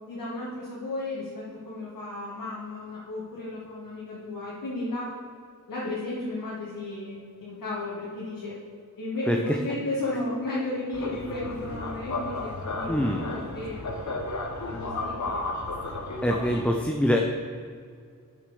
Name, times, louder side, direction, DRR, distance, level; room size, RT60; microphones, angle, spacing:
voice 1, 0.1-5.1 5.7-8.6 9.0-14.0 14.6-15.5, left 2 dB, 80° left, -7 dB, 1.9 m, -34 dB
voice 2, 9.3-9.6 12.9-13.3 16.2-17.2, equal, 5° left, 2 dB, 0.6 m, -24 dB
sound 1, 10.9-16.6, left 2 dB, 60° left, 1.1 m, -33 dB
7.2 x 6.4 x 6.9 m, 2.2 s
wide cardioid pair, 85°, 32 cm